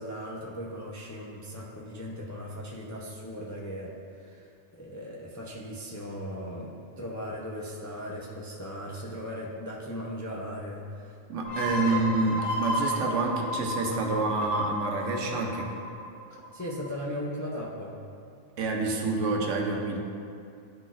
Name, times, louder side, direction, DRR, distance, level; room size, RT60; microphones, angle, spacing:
voice 1, 0.0-3.9 4.2-4.5 4.7-11.2 11.6-12.2 16.5-18.0, equal, 30° left, -4 dB, 0.3 m, -38 dB
voice 2, 11.3-15.7 18.6-20.0, right 3 dB, 80° right, 1 dB, 1.1 m, -28 dB
sound 1, 11.4-16.9, equal, 75° left, 1.4 m, -33 dB
10.5 x 4.0 x 2.5 m, 2.5 s
omnidirectional pair, 1.2 m